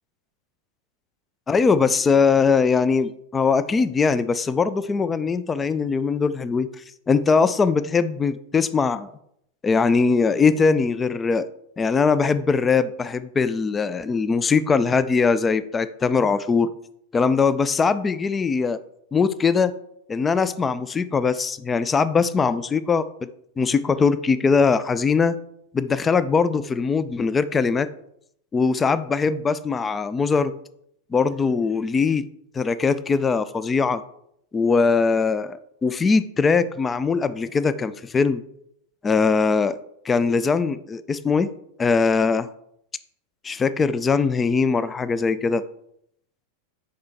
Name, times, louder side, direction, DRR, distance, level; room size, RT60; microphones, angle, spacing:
voice 1, 1.5-6.7 7.1-9.1 9.6-11.5 11.8-16.7 17.1-18.8 19.1-19.7 20.1-23.1 23.6-25.4 25.7-27.9 28.5-30.5 31.1-32.2 32.5-34.0 34.5-38.4 39.0-39.8 40.0-41.5 41.8-42.5 43.4-45.6, left 5 dB, 15° left, 14 dB, 0.3 m, -21 dB
6.6 x 5.3 x 3.4 m, 0.72 s
figure-of-eight pair, 90°, 0 cm